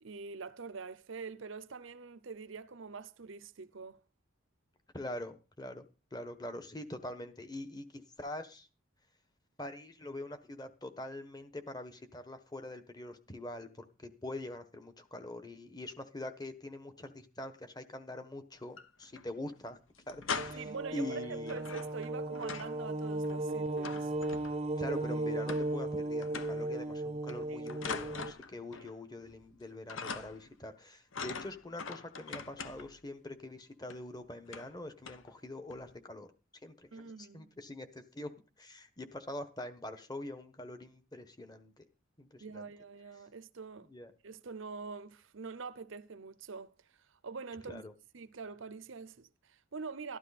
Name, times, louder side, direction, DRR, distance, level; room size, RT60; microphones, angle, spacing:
voice 1, 0.0-4.0 20.5-24.1 27.5-27.7 28.8-28.9 36.9-37.5 42.4-43.9 44.2-46.8 47.1-47.8 48.1-50.2, right 4 dB, 65° right, 0.7 m, -45 dB
voice 2, 4.9-5.9 6.1-8.7 9.6-19.8 20.1-21.6 24.8-36.3 36.6-38.3 38.6-41.8 42.2-42.7 43.8-44.1 47.7-47.9, left 1 dB, 20° left, 1.3 m, -44 dB
sound 1, 18.6-19.3 19.5-19.6 19.9-20.8 21.5-22.8 23.1-24.8 25.5-25.9 26.2-26.7 27.3-29.0 29.2-29.6 29.9-30.5 31.1-33.0 33.9-34.0 34.5-34.8 35.1-35.3 35.7-36.0, left 5 dB, 65° left, 1.0 m, -43 dB
sound 2, 20.3-28.3, right 2 dB, 30° right, 0.7 m, -36 dB
13.0 x 12.5 x 4.2 m
head